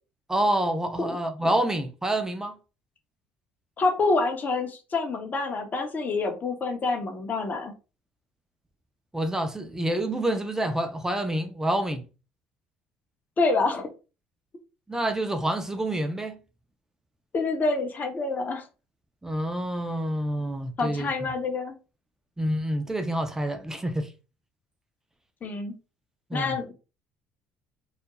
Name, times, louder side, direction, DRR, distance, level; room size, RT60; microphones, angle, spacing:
voice 1, 0.3-2.5 9.1-12.1 14.9-16.4 19.2-21.3 22.4-24.1 26.3-26.6, right 1 dB, 10° right, 0.6 m, -27 dB
voice 2, 3.8-7.7 13.4-13.9 17.3-18.6 20.8-21.8 25.4-25.7 26.3-26.7, left 3 dB, 35° left, 0.7 m, -27 dB
2.3 x 2.1 x 2.9 m
hypercardioid pair, 70°, 5 cm